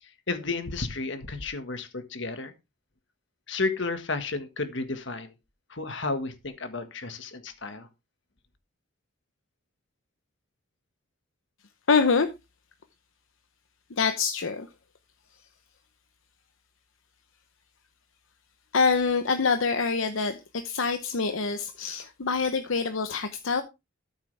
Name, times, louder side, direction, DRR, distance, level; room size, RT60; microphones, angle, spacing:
voice 1, 0.0-2.5 3.5-5.3 5.7-7.9, left 3 dB, 65° left, 1.6 m, -32 dB
voice 2, 11.9-12.3 14.0-14.7 18.7-23.6, left 5 dB, 80° left, 0.8 m, -25 dB
13.5 x 7.3 x 3.4 m
head